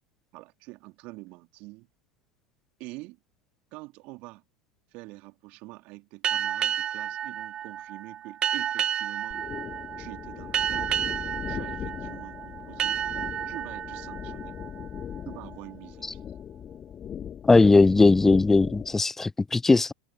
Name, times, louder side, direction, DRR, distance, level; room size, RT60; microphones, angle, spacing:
voice 1, 0.3-1.9 2.8-3.2 3.7-4.4 4.9-9.4 10.0-10.9 11.5-13.0 13.5-14.5 15.2-16.2, right 23 dB, 50° right, 2.9 m, -45 dB
sound 1, 6.2-15.5, right 9 dB, 30° right, 1.0 m, -31 dB
sound 2, 9.3-19.0, left 9 dB, 30° left, 2.6 m, -39 dB
voice 2, 17.5-19.9, left 3 dB, 10° left, 0.7 m, -19 dB
figure-of-eight pair, 85°, 3 cm